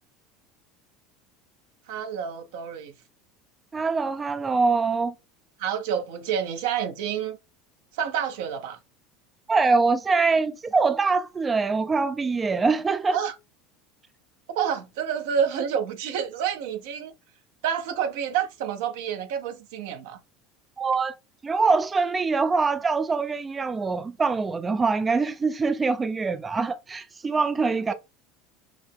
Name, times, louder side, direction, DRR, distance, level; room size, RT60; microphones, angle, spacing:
voice 1, 1.9-2.9 5.6-7.4 7.9-8.8 13.1-13.3 14.5-17.1 17.6-20.2, right 8 dB, 70° right, 0.7 m, -28 dB
voice 2, 3.7-5.1 9.5-13.2 20.8-21.2 21.4-27.9, right 4 dB, 25° right, 0.4 m, -24 dB
5.8 x 2.1 x 3.4 m
hypercardioid pair, 80°, 0 cm